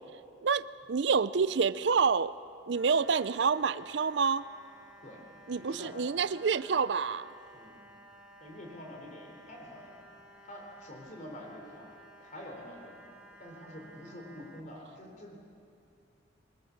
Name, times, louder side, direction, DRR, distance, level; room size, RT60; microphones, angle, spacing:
voice 1, 0.4-2.3 2.7-4.4 5.5-7.3, right 5 dB, 65° right, 0.5 m, -28 dB
sound 1, 2.7-14.6, equal, 5° right, 1.9 m, -55 dB
voice 2, 5.5-5.9 7.5-7.8 8.4-10.0 10.4-11.9 12.2-15.5, equal, 40° left, 4.1 m, -47 dB
23.0 x 20.5 x 7.3 m
head